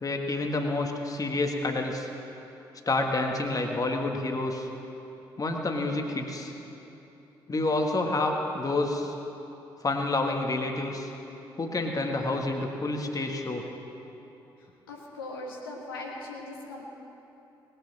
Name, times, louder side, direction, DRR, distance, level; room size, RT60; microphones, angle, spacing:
voice 1, 0.0-2.1 2.8-4.7 5.4-6.5 7.5-9.1 9.8-11.1 11.6-13.6, left 2 dB, 30° left, 2 dB, 1.7 m, -28 dB
voice 2, 14.9-16.8, left 2 dB, 80° left, -3 dB, 1.4 m, -39 dB
19.5 x 6.8 x 7.5 m, 3.0 s
figure-of-eight pair, 40°, 12 cm